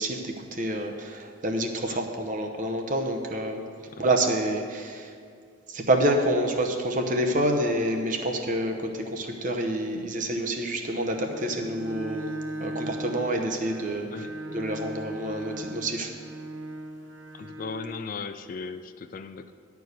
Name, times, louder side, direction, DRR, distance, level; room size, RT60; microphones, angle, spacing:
voice 1, 0.0-3.6 4.0-5.1 5.7-12.3 12.6-16.1, right 1 dB, 40° right, 4 dB, 0.9 m, -28 dB
Bowed string instrument, 11.1-18.1, right 1 dB, 65° right, 0.8 m, -38 dB
voice 2, 17.3-19.5, left 4 dB, 40° left, 10 dB, 0.3 m, -37 dB
11.0 x 4.6 x 8.1 m, 2.2 s
head